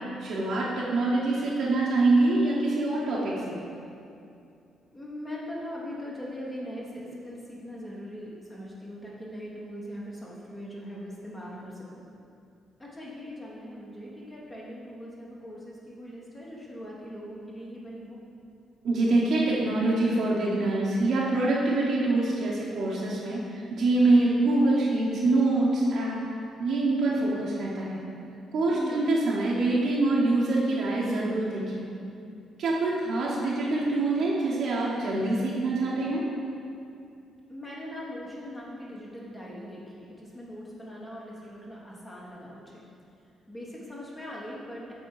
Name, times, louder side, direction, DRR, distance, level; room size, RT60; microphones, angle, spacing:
voice 1, 0.2-3.5 18.8-26.2 26.6-28.0 28.5-31.8 32.6-36.2, right 2 dB, 70° right, -6 dB, 1.0 m, -25 dB
voice 2, 4.9-12.0 12.8-18.2 28.7-29.1 37.5-42.8 43.5-44.9, equal, 20° left, -5 dB, 1.2 m, -40 dB
7.7 x 3.7 x 4.8 m, 2.6 s
cardioid pair, 90°, 0 cm